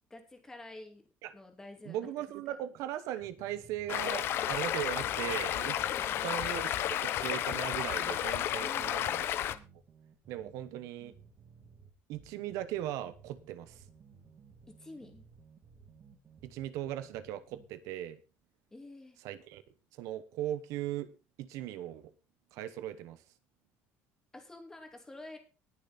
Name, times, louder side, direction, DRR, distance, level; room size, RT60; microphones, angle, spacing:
voice 1, 0.1-1.0 1.3-2.1 5.9-6.4 8.6-9.1 14.7-15.2 18.7-19.2 24.3-25.4, left 2 dB, 10° left, 2.6 m, -49 dB
voice 2, 1.9-5.8 6.2-9.3 10.3-11.1 12.1-13.8 16.4-18.2 19.2-19.6 19.9-21.1 21.4-22.1 22.5-23.2, right 12 dB, 65° right, 1.2 m, -38 dB
sound 1, 3.2-17.7, right 6 dB, 30° right, 2.7 m, -58 dB
Stream, 3.9-9.6, left 11 dB, 45° left, 0.9 m, -32 dB
19.5 x 7.0 x 4.2 m
cardioid pair, 170°, 6 cm